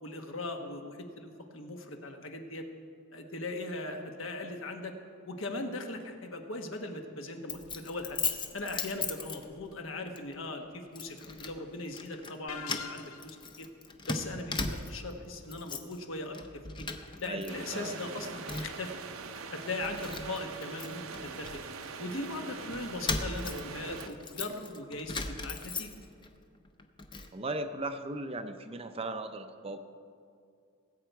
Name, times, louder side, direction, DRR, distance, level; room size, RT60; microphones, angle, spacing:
voice 1, 0.0-2.6 3.1-4.9 5.2-8.2 8.5-13.6 14.1-16.4 16.8-16.9 17.2-18.9 19.5-21.6 22.0-26.0, left 2 dB, 65° left, 4 dB, 1.2 m, -39 dB
Keys jangling, 7.5-9.8 10.2-10.4 11.0-11.6 11.9-12.4 12.6-15.1 15.4-16.0 16.3-17.5 17.8-18.9 19.4-19.5 19.8-22.1 22.7-26.3 26.6-27.3, left 4 dB, 20° left, 0.6 m, -38 dB
sound 1, 12.5-13.5, left 6 dB, 80° left, 0.5 m, -43 dB
voice 2, 17.2-18.0 27.3-29.8, right 2 dB, 25° right, 8 dB, 0.5 m, -37 dB
sound 2, 17.5-24.1, right 5 dB, 70° right, 0.7 m, -43 dB
19.0 x 8.0 x 4.6 m, 2.3 s
head